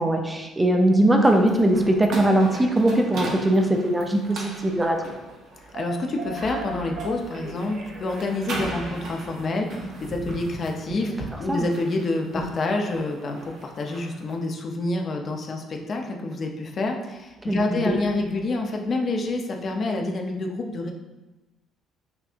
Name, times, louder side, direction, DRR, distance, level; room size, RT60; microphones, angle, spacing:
voice 1, 0.0-5.0 11.5-11.7 12.3-12.4 17.4-17.9, right 1 dB, 15° right, 3 dB, 0.5 m, -21 dB
sound 1, 1.2-14.3, right 1 dB, 65° right, 0.8 m, -37 dB
voice 2, 5.7-20.9, left 2 dB, 45° left, 2 dB, 0.6 m, -28 dB
5.7 x 2.7 x 2.5 m, 1.1 s
cardioid pair, 100°, 0 cm